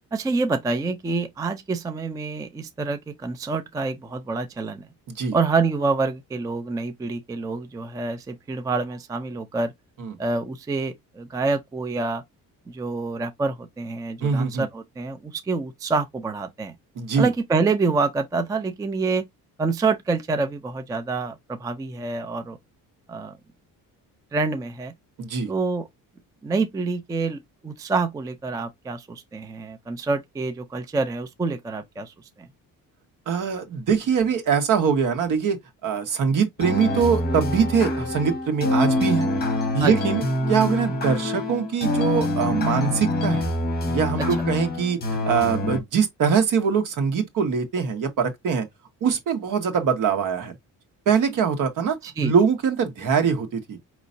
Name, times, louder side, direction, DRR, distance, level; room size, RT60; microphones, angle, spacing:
voice 1, 0.1-4.9 5.3-9.7 10.2-12.2 12.7-16.7 17.2-19.2 19.6-22.6 23.1-23.3 24.3-24.9 25.5-25.9 26.4-32.5 39.8-40.0 44.2-44.3 52.0-52.3, right 4 dB, 10° right, 0.3 m, -27 dB
voice 2, 14.2-14.7 17.0-17.3 25.2-25.5 33.3-35.6 35.8-39.3 39.7-43.5 43.9-48.7 49.0-50.5 51.0-53.8, right 6 dB, 60° right, 1.5 m, -23 dB
sound 1, 36.6-45.8, left 1 dB, 25° left, 1.2 m, -25 dB
5.3 x 3.0 x 2.6 m
cardioid pair, 175°, 35 cm